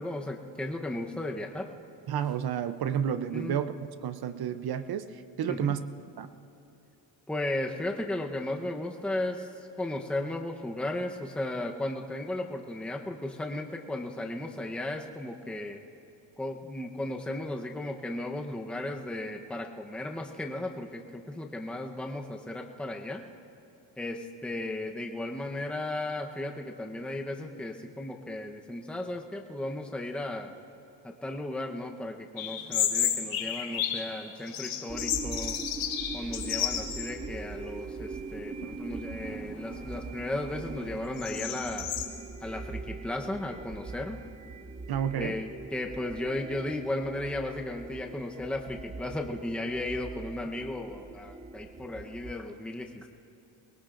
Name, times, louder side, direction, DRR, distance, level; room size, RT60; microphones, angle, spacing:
voice 1, 0.0-1.7 3.3-3.6 5.5-5.7 7.3-15.8 16.4-23.2 24.0-30.5 31.0-35.6 36.1-41.9 42.4-44.2 45.1-53.1, left 1 dB, ahead, 2 dB, 0.9 m, -35 dB
voice 2, 2.1-3.7 4.0-5.8 6.2-6.3 44.9-45.4, right 9 dB, 55° right, 12 dB, 0.7 m, -31 dB
sound 1, 32.4-34.1 34.5-37.2 37.5-37.6 38.4-38.8 39.2-42.0, left 9 dB, 80° left, 1.7 m, -32 dB
sound 2, 34.9-52.3, right 4 dB, 15° right, 0.4 m, -42 dB
23.5 x 21.0 x 2.6 m, 2.8 s
cardioid pair, 100°, 45 cm